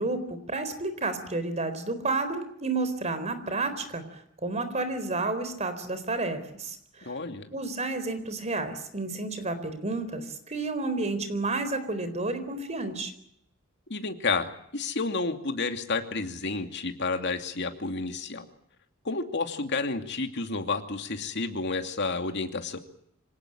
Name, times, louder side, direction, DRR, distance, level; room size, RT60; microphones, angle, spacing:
voice 1, 0.0-7.1 7.5-13.1, right 3 dB, 35° right, 10 dB, 4.1 m, -31 dB
voice 2, 7.1-7.5 13.9-14.5 14.7-18.5 19.0-22.8, left 3 dB, 60° left, 6 dB, 2.6 m, -30 dB
26.0 x 18.0 x 8.8 m, 0.73 s
head